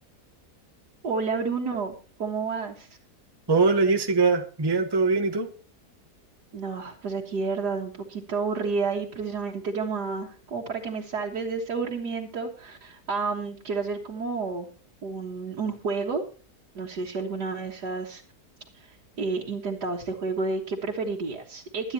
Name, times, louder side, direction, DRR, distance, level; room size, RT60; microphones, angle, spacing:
voice 1, 1.0-1.9 2.2-2.9 6.5-14.7 15.0-16.2 16.7-18.2 18.7-21.9, right 4 dB, 80° right, -3 dB, 2.2 m, -30 dB
voice 2, 3.5-5.5, right 4 dB, 15° right, 7 dB, 1.1 m, -22 dB
24.0 x 9.7 x 2.9 m, 0.36 s
omnidirectional pair, 1.7 m